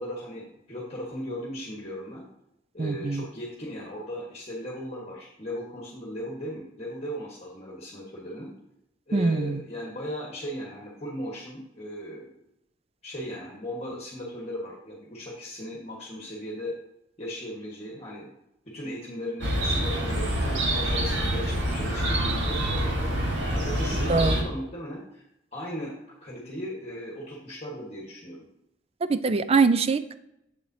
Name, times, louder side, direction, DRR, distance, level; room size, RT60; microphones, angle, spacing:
voice 1, 0.0-2.3 2.7-8.5 9.1-12.4 13.0-16.7 17.2-18.3 18.6-25.3 25.5-25.9 26.2-28.4, equal, 35° left, -3 dB, 1.3 m, -37 dB
voice 2, 2.8-3.2 9.1-9.6 24.1-24.4 29.0-30.2, right 4 dB, 35° right, 12 dB, 0.4 m, -23 dB
Chirp tweet, 19.4-24.4, equal, 75° right, 1.6 m, -26 dB
7.7 x 7.1 x 2.7 m, 0.82 s
head